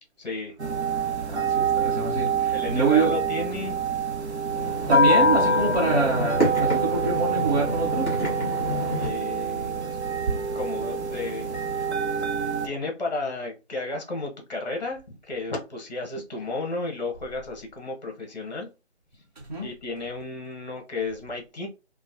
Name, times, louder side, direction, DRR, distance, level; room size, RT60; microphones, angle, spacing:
voice 1, 0.2-0.5 2.5-3.8 9.0-11.6 12.6-18.7 19.1-19.2 19.6-21.7, left 3 dB, 40° left, 0.9 m, -33 dB
sound 1, 0.6-12.7, right 2 dB, 70° right, 0.7 m, -26 dB
voice 2, 1.3-3.1 4.9-8.2 19.4-19.7, right 4 dB, 40° right, 0.9 m, -25 dB
sound 2, 4.4-9.1, equal, 10° left, 1.0 m, -30 dB
3.0 x 2.1 x 2.5 m
figure-of-eight pair, 160°, 35 cm